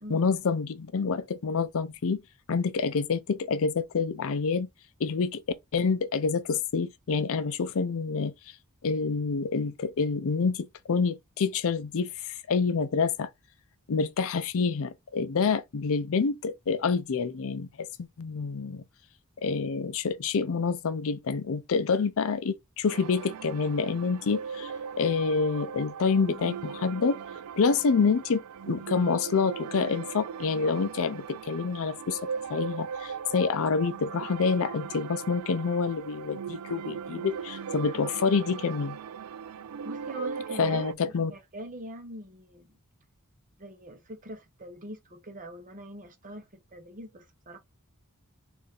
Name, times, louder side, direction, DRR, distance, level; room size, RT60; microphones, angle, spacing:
voice 1, 0.1-2.2 2.5-4.7 5.0-5.4 5.7-8.3 8.8-13.3 13.9-18.8 19.4-24.7 25.0-27.2 27.6-32.2 32.5-39.0 40.6-41.3, left 5 dB, 65° left, 0.5 m, -27 dB
sound 1, 22.9-40.9, right 6 dB, 85° right, 0.4 m, -38 dB
voice 2, 39.5-42.7 43.6-47.6, equal, 35° right, 0.9 m, -43 dB
3.8 x 2.6 x 3.7 m
head